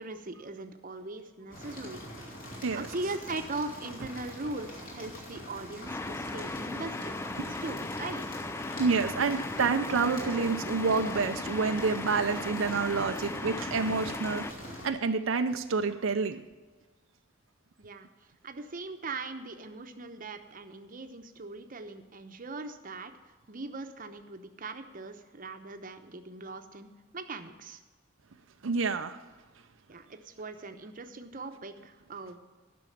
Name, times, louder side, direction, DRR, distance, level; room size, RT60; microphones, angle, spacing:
voice 1, 0.0-2.0 2.7-8.2 17.8-26.9 27.1-27.8 28.7-28.9 29.9-32.4, right 3 dB, 45° right, 7 dB, 0.9 m, -40 dB
sound 1, 1.5-14.9, left 1 dB, 45° left, 3.2 m, -44 dB
sound 2, 5.9-14.5, left 2 dB, 15° left, 0.4 m, -37 dB
voice 2, 8.8-14.5 14.8-16.4 28.6-29.2, right 4 dB, 85° right, 7 dB, 0.6 m, -28 dB
11.0 x 6.2 x 8.5 m, 1.3 s
head